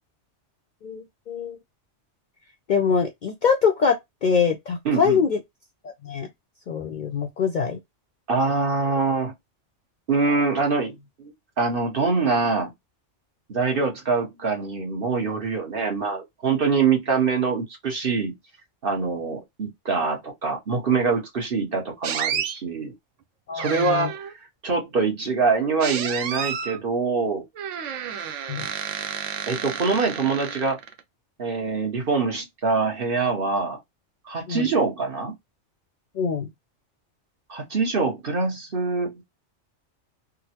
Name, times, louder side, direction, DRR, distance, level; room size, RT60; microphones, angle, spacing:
voice 1, 0.8-1.6 2.7-5.4 6.0-6.3 6.7-7.8 23.5-24.1 28.5-28.7 34.5-34.7 36.2-36.5, left 6 dB, 55° left, 0.5 m, -24 dB
voice 2, 4.8-5.2 8.3-9.3 10.1-12.7 13.5-18.3 18.8-22.9 23.5-24.3 24.6-27.4 29.5-30.8 31.4-33.8 34.3-35.3 37.5-39.2, right 4 dB, 50° right, 1.2 m, -24 dB
sound 1, 22.0-22.6 23.6-24.3 25.8-26.8 27.6-31.0, right 8 dB, 85° right, 1.0 m, -31 dB
3.6 x 2.0 x 2.8 m
omnidirectional pair, 1.2 m